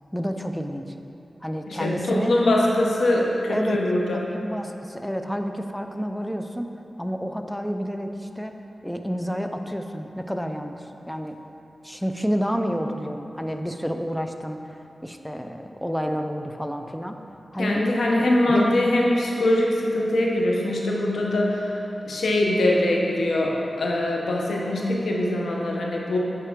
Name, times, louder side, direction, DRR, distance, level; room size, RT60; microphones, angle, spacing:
voice 1, 0.1-0.9 1.4-2.4 3.5-3.8 4.1-6.7 7.0-8.5 8.8-11.4 11.8-17.2 17.5-17.9 18.2-18.7, equal, 5° left, 5 dB, 0.5 m, -29 dB
voice 2, 1.7-4.2 17.6-21.7 22.0-26.2, left 1 dB, 90° left, -2 dB, 0.8 m, -22 dB
8.3 x 4.7 x 3.6 m, 2.9 s
cardioid pair, 55°, 0 cm